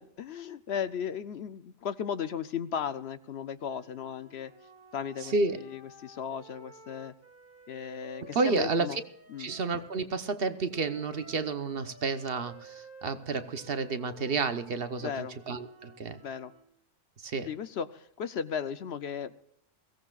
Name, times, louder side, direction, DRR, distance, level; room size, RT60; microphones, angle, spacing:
voice 1, 0.0-4.5 4.9-7.1 7.7-9.0 9.3-9.5 15.0-15.4 16.2-16.5 17.4-19.3, left 7 dB, 60° left, 13 dB, 0.9 m, -36 dB
Wind instrument woodwind instrument, 3.6-10.0 10.7-16.7, right 1 dB, 10° right, 2.0 m, -54 dB
voice 2, 5.2-5.6 8.2-9.0 9.4-16.2 17.2-17.5, right 4 dB, 55° right, 11 dB, 1.0 m, -31 dB
22.0 x 17.0 x 2.4 m, 0.69 s
omnidirectional pair, 1.3 m